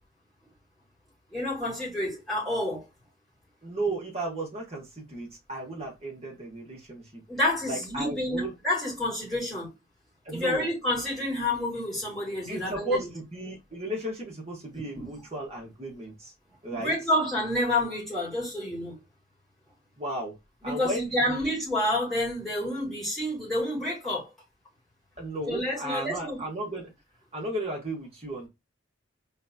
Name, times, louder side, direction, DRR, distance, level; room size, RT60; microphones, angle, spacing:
voice 1, 1.3-2.8 7.3-9.7 10.3-13.0 14.9-15.1 16.7-19.0 20.6-24.3 25.5-26.4, left 1 dB, ahead, 3.0 m, -29 dB
voice 2, 3.6-7.2 7.7-8.5 10.2-10.6 12.5-16.3 16.6-16.9 20.0-20.3 20.6-21.5 25.2-26.9 27.3-28.5, right 1 dB, 30° right, 1.5 m, -34 dB
4.3 x 3.4 x 2.7 m
head